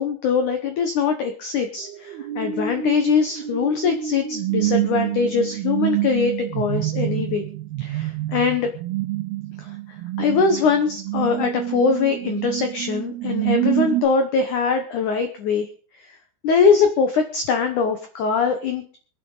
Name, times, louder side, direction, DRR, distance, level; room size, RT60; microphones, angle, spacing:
voice 1, 0.0-7.4 7.8-8.7 9.6-15.7 16.0-16.1 16.4-18.8, left 5 dB, 80° left, 6 dB, 1.7 m, -22 dB
sound 1, 1.8-14.1, right 14 dB, 75° right, 2.6 m, -27 dB
24.5 x 9.1 x 3.9 m, 0.43 s
omnidirectional pair, 5.1 m